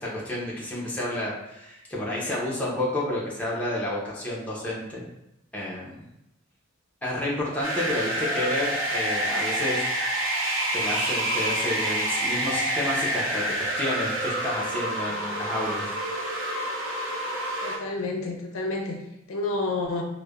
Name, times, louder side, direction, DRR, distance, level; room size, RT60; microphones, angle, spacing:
voice 1, 0.0-5.1 5.5-6.0 7.0-9.8 10.7-15.9, left 1 dB, 5° left, -6 dB, 0.5 m, -30 dB
sound 1, 7.6-17.8, right 1 dB, 70° right, 0.5 m, -28 dB
voice 2, 17.6-20.0, left 2 dB, 80° left, 1 dB, 0.5 m, -30 dB
3.1 x 2.0 x 2.3 m, 0.88 s
head